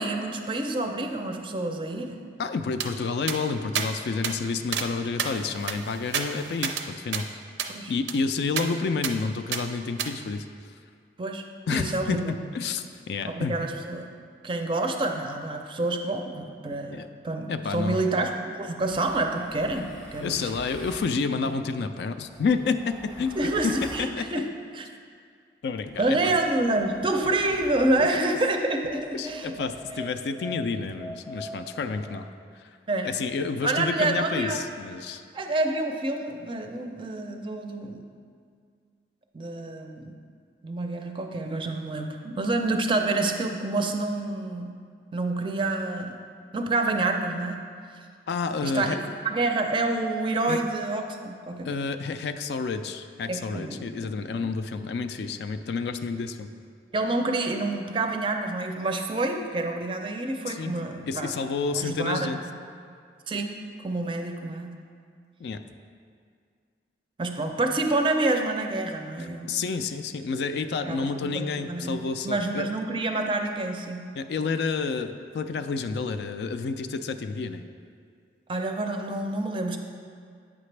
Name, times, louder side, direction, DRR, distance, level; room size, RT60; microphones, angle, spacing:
voice 1, 0.0-2.2 7.7-7.9 11.2-11.4 11.7-12.3 13.3-14.1 14.4-20.5 23.4-24.5 24.7-24.9 26.0-29.6 32.9-33.1 33.6-34.6 35.3-38.0 39.3-40.1 40.6-44.8 45.1-46.2 46.5-47.6 48.6-49.0 49.2-51.8 53.3-54.5 56.9-61.3 61.7-62.3 63.3-63.5 63.8-64.8 67.2-69.6 70.9-74.0 78.5-79.8, right 2 dB, 30° right, 4 dB, 0.4 m, -28 dB
voice 2, 2.4-7.3 7.9-10.5 11.7-13.6 16.9-17.1 17.5-18.0 20.2-24.3 25.6-26.2 27.2-27.3 28.0-28.1 29.1-32.3 33.0-35.2 48.3-49.0 50.5-50.6 51.6-56.5 60.5-60.7 61.1-62.4 65.4-65.6 69.2-72.7 74.2-77.6, left 4 dB, 65° left, 9 dB, 0.3 m, -29 dB
sound 1, 2.8-2.9 3.3-3.4 3.8-3.9 4.2-4.4 4.7-4.9 5.2-6.9 7.1-7.2 7.6-7.7 8.1-8.2 8.6-8.7 9.0-9.2 9.5-9.6 10.0-10.1, right 7 dB, 80° right, 0.5 m, -30 dB
sound 2, 18.8-21.2 22.1-24.2 25.8-28.2 28.8-32.3, left 1 dB, 5° left, 0.7 m, -44 dB
8.4 x 5.8 x 3.2 m, 2.1 s
head